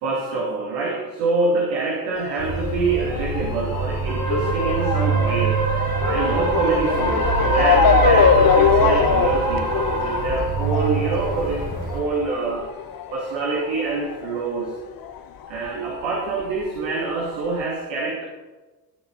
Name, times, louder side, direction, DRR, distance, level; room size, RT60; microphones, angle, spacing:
voice 1, 0.0-5.6 6.0-11.6 11.9-12.7 13.1-14.7 15.5-18.2, right 3 dB, 75° right, -2 dB, 2.5 m, -25 dB
Motor vehicle (road) / Siren, 2.2-15.2 15.4-16.6 17.3-17.4 17.6-17.7, left 8 dB, 45° left, 1.1 m, -23 dB
sound 1, 2.4-12.0, right 4 dB, 50° right, 3.8 m, -23 dB
13.5 x 9.3 x 5.1 m, 1.2 s
hypercardioid pair, 55°, 49 cm